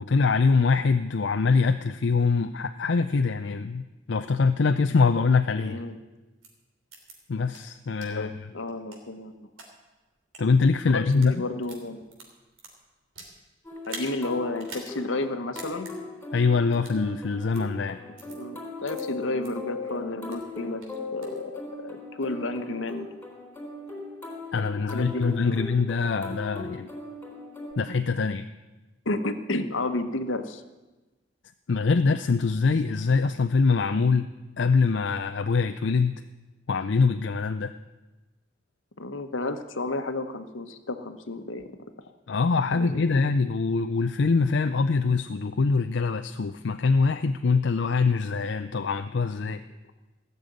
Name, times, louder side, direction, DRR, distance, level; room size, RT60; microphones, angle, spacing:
voice 1, 0.0-5.8 7.3-8.5 10.4-11.4 16.3-18.0 24.5-26.9 27.8-28.4 31.7-34.3 34.6-36.2 36.7-37.7 42.3-49.6, left 4 dB, 60° left, 8 dB, 0.5 m, -24 dB
voice 2, 5.6-5.9 8.1-9.5 10.9-12.0 13.9-15.9 18.3-20.8 21.1-23.1 24.8-25.7 29.0-30.6 39.0-41.7 42.7-43.0, left 2 dB, 75° left, 8 dB, 1.2 m, -32 dB
sound 1, 6.4-6.5 6.9-7.1 7.5-7.6 8.0-8.1 8.7-9.7 10.2-10.4 11.0-11.3 11.6-13.4 13.8-14.1 14.6-14.9 15.2-15.3 15.6-15.9 16.7-17.0 17.5-17.6 18.2-18.4 18.9-19.0 19.4-19.5 19.9-20.5 20.8-21.4, right 4 dB, 80° right, 3.2 m, -43 dB
sound 2, 13.6-27.7, left 3 dB, 10° left, 3.8 m, -39 dB
17.0 x 6.9 x 9.2 m, 1.1 s
head